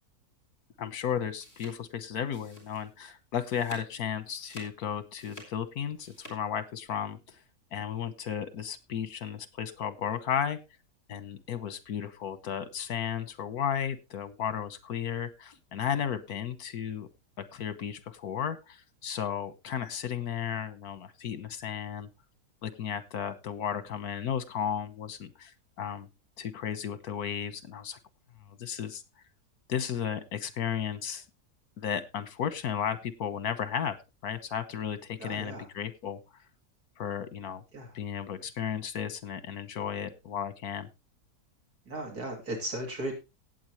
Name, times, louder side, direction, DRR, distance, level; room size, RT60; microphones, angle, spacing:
voice 1, 0.8-7.4 7.7-10.6 11.1-17.1 17.4-22.1 22.6-25.5 25.8-26.1 26.4-28.0 28.6-29.0 29.7-31.2 31.8-34.0 34.2-36.2 37.0-37.6 37.9-40.9, left 8 dB, 80° left, 13 dB, 1.6 m, -34 dB
sound 1, 1.1-3.0 3.3-4.0 4.3-6.4, equal, 50° left, 4.7 m, -50 dB
voice 2, 35.2-35.7 37.7-37.9 41.9-43.1, right 1 dB, 85° right, 1 dB, 3.4 m, -36 dB
17.5 x 8.0 x 3.1 m, 0.26 s
omnidirectional pair, 1.6 m